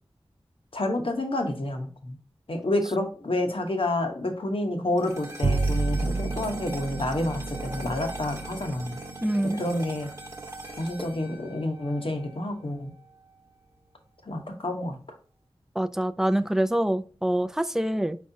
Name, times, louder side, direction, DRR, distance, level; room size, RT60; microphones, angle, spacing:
voice 1, 0.7-2.2 2.5-9.0 9.4-10.1 10.8-12.9 14.2-15.0, left 1 dB, 60° left, 4 dB, 1.0 m, -29 dB
sound 1, 5.0-13.5, right 2 dB, 30° right, 1.0 m, -42 dB
Bowed string instrument, 5.4-11.9, right 3 dB, 70° right, 0.5 m, -32 dB
voice 2, 9.2-9.6 15.8-18.2, right 1 dB, 5° right, 12 dB, 0.3 m, -25 dB
4.6 x 4.2 x 2.7 m, 0.40 s
wide cardioid pair, 55°, 10 cm